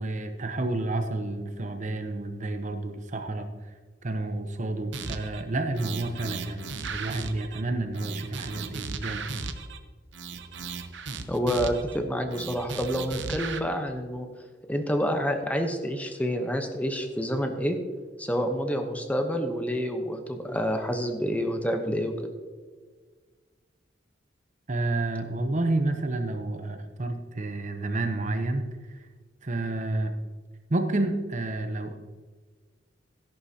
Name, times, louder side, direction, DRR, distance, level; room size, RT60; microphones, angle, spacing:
voice 1, 0.0-3.5 4.0-9.3 24.7-29.0 29.4-30.1 30.7-32.0, right 2 dB, 45° right, 7 dB, 0.8 m, -30 dB
sound 1, 4.9-5.4 5.8-7.6 7.9-9.8 10.1-12.0 12.3-13.6, right 5 dB, 80° right, 0.8 m, -36 dB
voice 2, 11.3-14.3 14.7-17.8 18.2-22.3, equal, 10° left, 5 dB, 0.9 m, -28 dB
13.0 x 11.0 x 2.8 m, 1.5 s
head